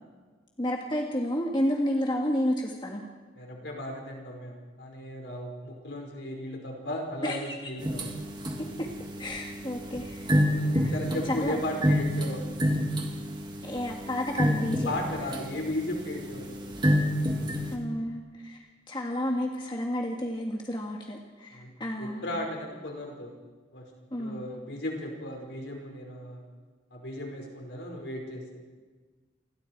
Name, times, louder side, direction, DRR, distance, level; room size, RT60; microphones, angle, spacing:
voice 1, 0.6-3.0 7.2-7.4 8.6-8.9 9.2-10.3 10.8-11.0 11.3-11.6 13.6-14.9 17.7-22.4 24.1-24.4, left 1 dB, 25° left, 0 dB, 1.9 m, -31 dB
voice 2, 3.4-8.1 10.5-12.4 14.9-16.6 21.5-21.7 22.0-23.3 23.7-23.8 24.2-26.4 26.9-28.4, left 1 dB, 60° left, 1 dB, 5.3 m, -35 dB
sound 1, 7.8-17.8, equal, 25° right, 2.5 m, -29 dB
29.0 x 22.0 x 4.7 m, 1.4 s
head